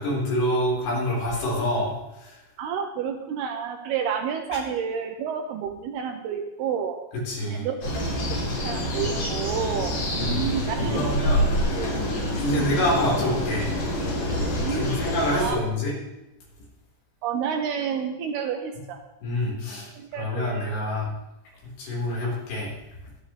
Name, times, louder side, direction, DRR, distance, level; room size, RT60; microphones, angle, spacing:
voice 1, 0.0-2.4 7.3-7.7 10.2-10.4 10.9-11.4 12.4-13.7 14.7-15.9 19.2-19.9 20.2-21.1 21.6-22.7, left 1 dB, 80° left, -5 dB, 6.9 m, -26 dB
voice 2, 2.6-7.0 7.4-11.1 11.7-12.1 12.5-12.7 14.5-14.9 15.3-15.6 17.2-19.0 20.0-20.8, right 7 dB, 80° right, 4 dB, 2.4 m, -30 dB
sound 1, 7.8-15.5, equal, 60° left, 6.8 m, -26 dB
24.5 x 9.4 x 3.4 m, 0.99 s
omnidirectional pair, 5.2 m